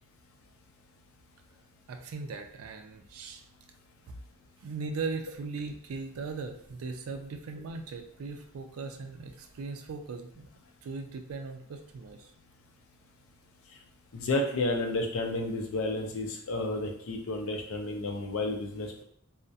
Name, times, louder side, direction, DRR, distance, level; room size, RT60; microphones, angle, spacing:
voice 1, 1.9-3.4 4.1-4.2 4.6-10.5 10.8-12.3, right 4 dB, 75° right, 5 dB, 0.4 m, -39 dB
voice 2, 14.1-19.0, left 2 dB, 70° left, 2 dB, 0.5 m, -31 dB
2.3 x 2.0 x 2.6 m, 0.66 s
head